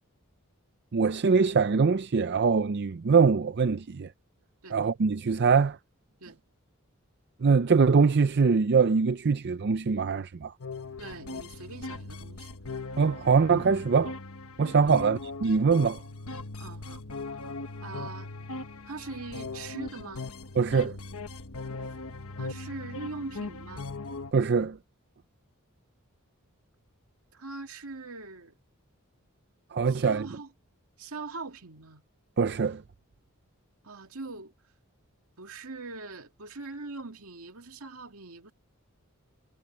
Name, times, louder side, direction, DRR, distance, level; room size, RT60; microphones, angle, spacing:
voice 1, 0.9-4.1 4.7-5.8 7.4-10.5 13.0-14.1 14.6-16.0 20.6-20.9 24.3-24.8 29.7-30.3 32.4-32.8, right 5 dB, 50° right, 0.5 m, -23 dB
sound 1, 10.6-24.3, left 3 dB, 75° left, 1.3 m, -39 dB
voice 2, 11.0-12.6 14.8-15.1 16.6-17.0 17.8-18.3 18.9-20.2 22.4-23.9 27.3-28.5 29.9-30.5 31.0-32.0 33.8-34.5 35.4-38.5, right 3 dB, 80° right, 2.1 m, -42 dB
head